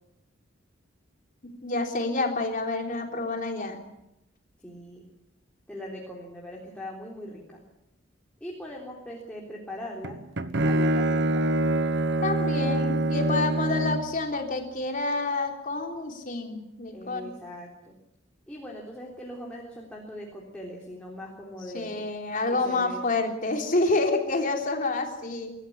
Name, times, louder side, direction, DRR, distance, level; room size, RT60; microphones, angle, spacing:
voice 1, 1.4-3.8 12.2-17.3 21.7-25.5, left 3 dB, 45° left, 3 dB, 3.6 m, -28 dB
voice 2, 4.6-5.1 5.7-7.6 8.4-10.2 10.6-11.4 16.9-17.9 18.5-22.1 22.5-23.3, left 1 dB, 5° left, -3 dB, 3.7 m, -40 dB
Bowed string instrument, 10.0-14.2, right 1 dB, 65° right, 1.2 m, -25 dB
24.0 x 14.0 x 10.0 m, 0.89 s
head